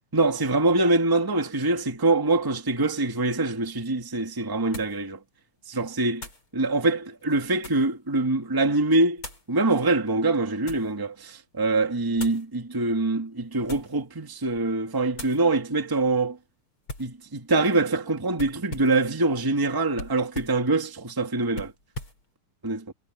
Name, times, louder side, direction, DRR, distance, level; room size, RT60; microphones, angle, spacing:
voice 1, 0.1-5.2 5.7-6.3 6.5-16.4 17.0-21.7 22.6-22.9, right 2 dB, 10° right, 1.6 m, -24 dB
sound 1, 3.6-3.7 4.7-5.0 6.2-6.5 7.2-7.9 9.2-9.5 10.2-10.9 12.1-12.5 13.5-14.0 14.4-14.7 15.1-15.4 16.9-17.2 18.3-19.0 19.9-20.6 21.5-22.2, left 2 dB, 40° left, 8.8 m, -40 dB
omnidirectional pair, 3.5 m